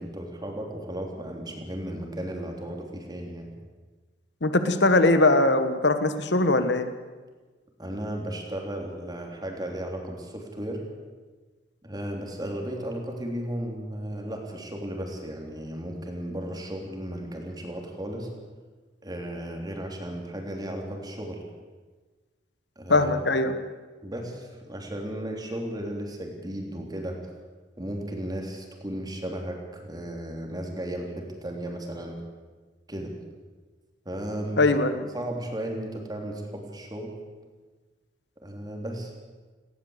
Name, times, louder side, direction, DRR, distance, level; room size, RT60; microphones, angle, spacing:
voice 1, 0.0-3.5 7.8-10.8 11.8-18.3 19.0-21.4 22.7-23.1 24.0-27.2 27.8-32.2 32.9-33.1 34.0-34.6 35.1-37.1 38.4-39.1, right 1 dB, 20° right, 1 dB, 3.3 m, -35 dB
voice 2, 4.4-6.9 22.9-23.5 34.6-35.0, left 2 dB, 65° left, 10 dB, 1.5 m, -21 dB
19.0 x 17.0 x 8.1 m, 1.3 s
head